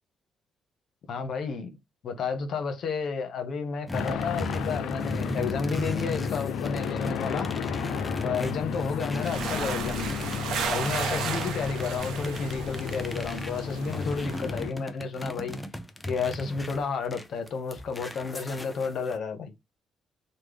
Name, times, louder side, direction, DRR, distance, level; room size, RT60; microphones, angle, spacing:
voice 1, 1.1-1.8 2.0-7.5 8.2-10.1 10.7-15.6 16.1-19.5, left 5 dB, 60° left, 0.7 m, -32 dB
sound 1, 3.9-14.7, left 6 dB, 80° left, 0.3 m, -33 dB
sound 2, 3.9-10.4 10.8-19.2, equal, 10° left, 0.4 m, -37 dB
sound 3, 9.2-14.4, right 6 dB, 80° right, 0.6 m, -34 dB
3.2 x 2.1 x 3.4 m
cardioid pair, 90°, 0 cm